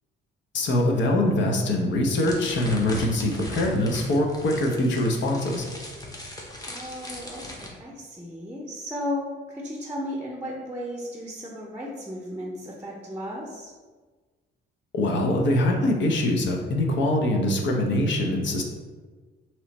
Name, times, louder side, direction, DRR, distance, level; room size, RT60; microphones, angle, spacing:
voice 1, 0.5-5.7 14.9-18.6, left 1 dB, 70° left, 1 dB, 0.7 m, -23 dB
sound 1, 2.1-7.7, left 1 dB, 20° left, 0.9 m, -38 dB
voice 2, 6.6-13.7, left 1 dB, 5° right, -2 dB, 0.6 m, -35 dB
3.1 x 3.0 x 4.1 m, 1.4 s
cardioid pair, 90°, 20 cm